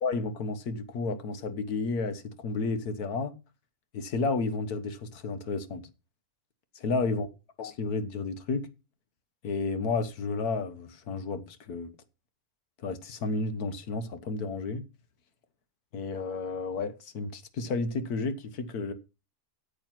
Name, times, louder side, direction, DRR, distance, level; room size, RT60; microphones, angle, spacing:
voice 1, 0.0-3.3 3.9-5.9 6.8-7.3 7.6-8.7 9.4-11.9 12.8-14.9 15.9-18.9, left 3 dB, 85° left, 1.7 m, -32 dB
9.0 x 8.0 x 5.8 m
omnidirectional pair, 1.6 m